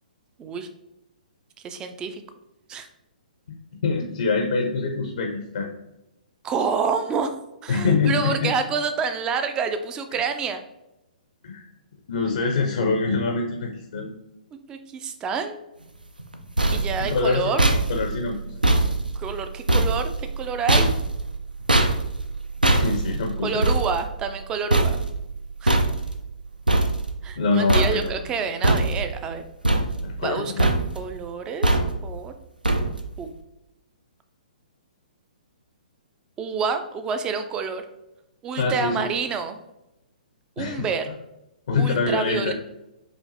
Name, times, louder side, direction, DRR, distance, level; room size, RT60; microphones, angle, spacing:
voice 1, 1.6-2.2 2.7-2.9 6.4-7.4 7.6-10.6 14.5-15.6 16.7-17.6 19.1-20.9 23.4-25.0 25.6-25.8 27.2-29.4 30.2-30.7 31.0-32.3 33.2-33.3 36.4-37.8 38.4-39.6 40.6-41.1 41.8-42.5, right 5 dB, 15° right, 8 dB, 0.3 m, -28 dB
voice 2, 3.8-5.7 7.7-8.5 10.1-10.2 11.4-11.6 12.1-14.1 17.0-17.5 17.9-18.6 22.7-23.6 27.4-28.2 30.0-30.7 38.6-39.1 40.6-40.9 41.7-42.5, left 4 dB, 55° left, 2 dB, 0.5 m, -25 dB
sound 1, 16.2-27.4 27.7-28.3 28.6-29.3 29.6-30.3 30.6-31.1 31.6-32.2 32.6-33.2, right 2 dB, 85° right, 0.5 m, -23 dB
4.9 x 2.5 x 2.6 m, 0.91 s
figure-of-eight pair, 120°, 5 cm